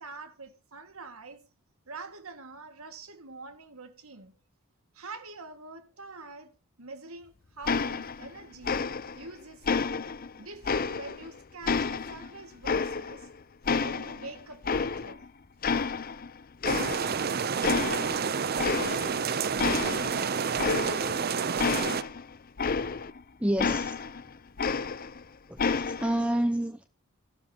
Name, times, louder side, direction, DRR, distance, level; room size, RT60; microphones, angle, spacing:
voice 1, 0.0-1.4 1.9-4.4 4.9-8.9 9.2-9.9 10.4-13.3 13.8-15.3, right 3 dB, 80° right, 2.0 m, -45 dB
sound 1, 7.7-8.4 8.6-9.3 9.7-11.3 11.7-13.3 13.7-15.3 15.6-16.3 16.6-17.3 17.6-18.2 18.6-19.2 19.6-23.2 23.6-25.2 25.6-26.2, left 5 dB, 45° left, 0.6 m, -30 dB
sound 2, 16.7-22.0, right 6 dB, 45° right, 0.6 m, -29 dB
voice 2, 23.4-24.0 25.5-26.9, right 1 dB, 5° right, 0.7 m, -29 dB
14.5 x 12.5 x 2.9 m
head